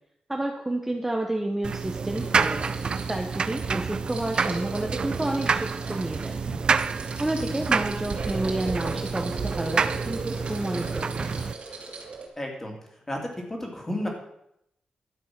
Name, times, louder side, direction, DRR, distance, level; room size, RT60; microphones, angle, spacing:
voice 1, 0.3-6.4 7.2-11.3, right 1 dB, 10° right, 1 dB, 1.0 m, -30 dB
sound 1, 1.6-11.5, right 5 dB, 35° right, 0.5 m, -28 dB
sound 2, 1.9-12.3, right 3 dB, 50° right, 2.8 m, -38 dB
voice 2, 12.4-12.7 13.1-13.2 13.5-14.1, left 1 dB, 15° left, 1 dB, 2.6 m, -31 dB
12.0 x 8.2 x 6.0 m, 0.79 s
wide cardioid pair, 160°, 2 cm